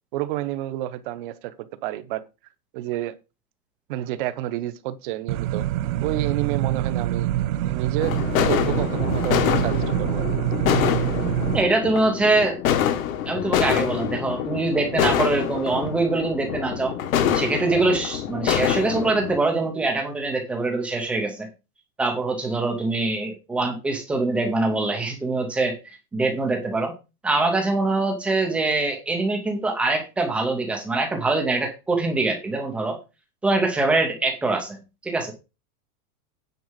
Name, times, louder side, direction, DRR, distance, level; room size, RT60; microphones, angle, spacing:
voice 1, 0.1-1.5 1.8-2.2 2.7-3.2 3.9-5.7 6.0-7.3 7.6-10.3, right 14 dB, 35° right, 0.9 m, -30 dB
sound 1, 5.3-11.6, right 13 dB, 65° right, 0.8 m, -25 dB
sound 2, 8.0-19.4, left 9 dB, 65° left, 1.7 m, -25 dB
voice 2, 11.5-12.6 13.3-16.9 17.3-21.5 22.0-26.9 27.2-33.0 33.4-35.3, right 3 dB, 5° right, 0.4 m, -24 dB
9.4 x 4.6 x 7.3 m
supercardioid pair, 175°, 45 cm